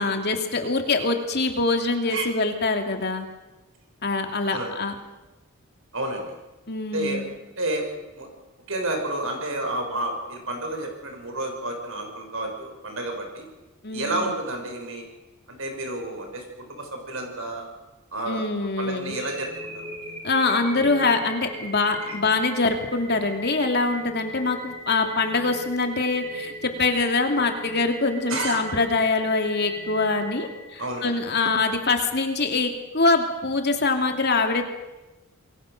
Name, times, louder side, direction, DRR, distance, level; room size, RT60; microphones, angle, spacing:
voice 1, 0.0-3.3 4.0-5.0 6.7-7.3 13.8-14.3 18.3-19.2 20.2-34.6, left 3 dB, 50° left, 4 dB, 2.8 m, -24 dB
voice 2, 5.9-6.4 6.9-7.2 7.6-7.8 8.1-8.3 8.7-13.4 13.9-15.1 15.5-17.6 18.1-18.5 18.8-19.5 19.7-19.9 22.1-22.2 28.3-28.6 30.8-31.3, right 2 dB, 65° right, 3 dB, 6.3 m, -30 dB
sound 1, 19.1-31.1, equal, 35° right, 7.0 m, -39 dB
27.5 x 21.5 x 6.7 m, 1.1 s
head